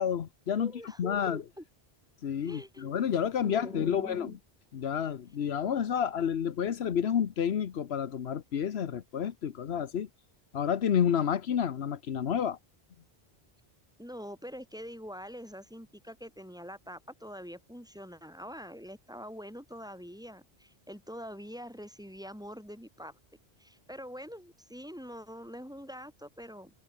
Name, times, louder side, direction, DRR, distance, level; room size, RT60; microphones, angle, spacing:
voice 1, 0.0-0.7 1.0-1.4 2.2-4.4 4.7-10.1 10.5-12.6, left 8 dB, 80° left, 1.2 m, -30 dB
voice 2, 0.6-1.6 2.4-2.9 3.4-4.4 14.0-23.2 23.6-26.7, equal, 5° right, 4.2 m, -44 dB
omnidirectional pair, 1.0 m